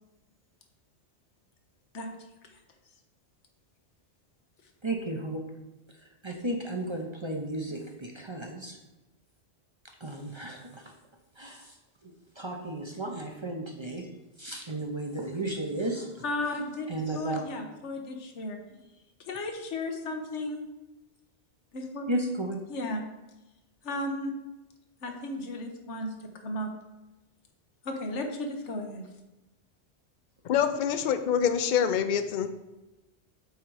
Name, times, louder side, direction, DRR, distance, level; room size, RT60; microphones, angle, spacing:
voice 1, 4.8-5.4 6.0-8.8 10.0-10.9 11.4-11.8 12.0-14.1 14.4-16.2 16.9-17.4 22.1-22.6, right 1 dB, 30° right, 2 dB, 0.7 m, -34 dB
voice 2, 16.2-18.8 19.3-20.6 21.7-22.1 22.7-23.0 23.8-24.3 25.0-26.1 26.4-26.7 27.8-29.0, left 1 dB, 90° left, 4 dB, 1.3 m, -34 dB
voice 3, 30.4-32.5, left 8 dB, 55° left, 10 dB, 0.6 m, -25 dB
8.0 x 3.8 x 4.8 m, 1.0 s
omnidirectional pair, 1.2 m